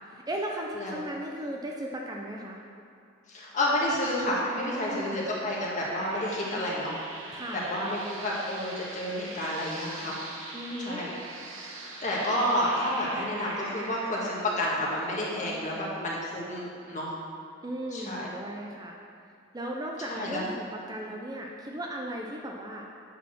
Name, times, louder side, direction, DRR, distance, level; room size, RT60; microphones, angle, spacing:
voice 1, 0.0-2.6 4.5-5.3 7.3-8.0 10.5-11.0 12.4-12.5 17.6-19.0 19.5-22.8, right 1 dB, 20° right, 0 dB, 0.5 m, -36 dB
voice 2, 3.3-7.0 7.5-10.2 10.8-11.1 12.0-17.1 17.9-18.3 20.1-20.5, left 1 dB, 40° left, -5 dB, 1.6 m, -30 dB
sound 1, 3.7-14.5, right 2 dB, 85° right, 1.0 m, -42 dB
8.4 x 4.2 x 6.0 m, 2.4 s
head